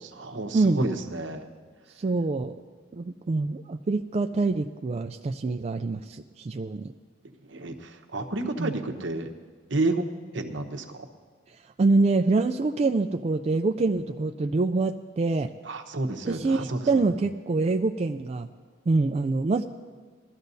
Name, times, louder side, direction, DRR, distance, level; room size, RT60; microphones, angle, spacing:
voice 1, 0.0-1.5 7.5-9.3 9.7-10.1 10.3-11.0 15.6-17.1, right 2 dB, 70° right, 4 dB, 1.0 m, -30 dB
voice 2, 2.0-2.5 2.9-6.9 8.6-8.8 11.8-15.5 16.3-18.5 18.9-19.6, right 3 dB, 35° right, 5 dB, 0.3 m, -25 dB
21.0 x 13.0 x 2.7 m, 1.5 s
head